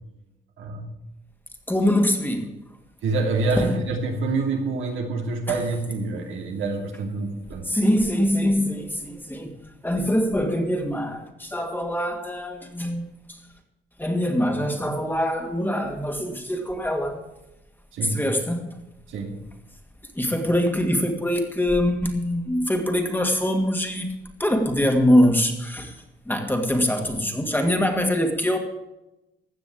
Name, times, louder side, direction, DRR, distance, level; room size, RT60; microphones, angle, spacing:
voice 1, 0.6-0.9 3.0-7.7 17.9-18.2 19.1-19.4, right 3 dB, 80° right, 2 dB, 2.7 m, -26 dB
voice 2, 1.7-2.6 3.6-3.8 5.5-5.6 7.7-9.5 9.8-13.4 14.0-17.2 18.1-18.7 20.2-24.1 24.4-25.9 26.3-28.6, equal, 10° left, 4 dB, 2.4 m, -23 dB
16.0 x 6.1 x 8.7 m, 0.93 s
cardioid pair, 90°, 20 cm